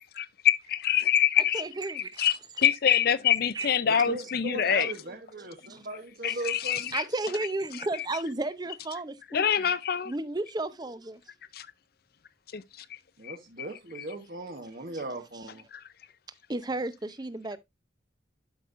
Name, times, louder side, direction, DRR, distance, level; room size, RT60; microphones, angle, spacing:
voice 1, 0.0-1.6 1.9-4.9 6.2-7.0 9.3-10.1 11.5-11.7 12.5-12.6 12.9-13.0 13.2-13.7 15.7-15.8, left 9 dB, 55° left, 0.5 m, -26 dB
voice 2, 1.4-2.3 3.3-4.0 5.7-5.8 6.3-6.4 6.7-9.7 10.0-11.2 14.9-15.0 15.3-15.5 16.5-17.6, right 2 dB, 20° right, 0.6 m, -34 dB
voice 3, 3.8-6.9 13.2-15.7, right 2 dB, 50° right, 1.1 m, -38 dB
12.0 x 5.3 x 2.5 m
head